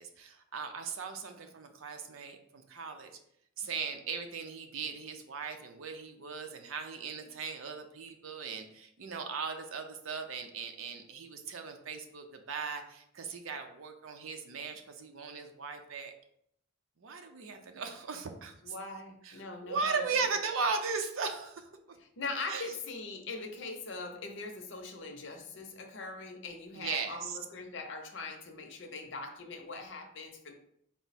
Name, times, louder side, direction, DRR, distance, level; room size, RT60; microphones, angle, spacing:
voice 1, 0.0-3.1 3.6-16.1 17.0-18.7 19.2-22.0 22.5-22.7 26.8-27.4, right 5 dB, 75° right, 6 dB, 0.5 m, -38 dB
voice 2, 18.6-20.0 22.2-30.5, left 3 dB, 60° left, 4 dB, 0.6 m, -41 dB
4.5 x 2.0 x 4.0 m, 0.72 s
head